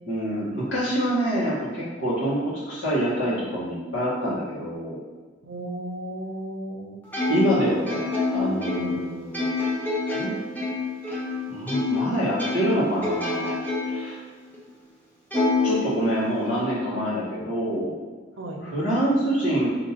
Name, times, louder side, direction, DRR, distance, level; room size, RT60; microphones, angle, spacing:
voice 1, 0.1-5.0 7.3-9.5 10.1-10.3 11.5-14.2 15.6-17.9 18.6-19.7, right 1 dB, 75° left, -9 dB, 1.4 m, -26 dB
voice 2, 5.4-7.0 8.7-9.0 18.4-18.7, right 1 dB, 80° right, 1 dB, 0.7 m, -34 dB
Plucked string instrument, 7.1-12.1 12.4-14.1 14.5-14.6 15.3-16.5, left 3 dB, 10° left, 0.9 m, -27 dB
5.3 x 2.8 x 2.9 m, 1.4 s
head